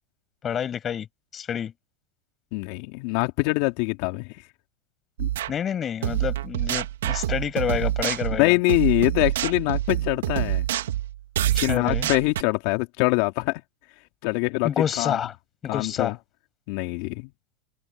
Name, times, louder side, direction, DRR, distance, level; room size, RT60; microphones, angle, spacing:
voice 1, 0.4-1.1 1.3-1.7 5.5-8.5 11.5-12.1 14.6-15.4 15.6-16.1, left 8 dB, 35° left, 6.3 m, -28 dB
voice 2, 2.5-4.4 5.2-5.3 8.4-10.6 11.6-13.6 14.2-14.7 15.0-15.2 15.7-16.1 16.7-17.3, left 27 dB, 60° left, 2.7 m, -24 dB
sound 1, 5.2-5.5 6.0-12.4, right 13 dB, 80° right, 2.0 m, -26 dB
open air
hypercardioid pair, 95°, 0 cm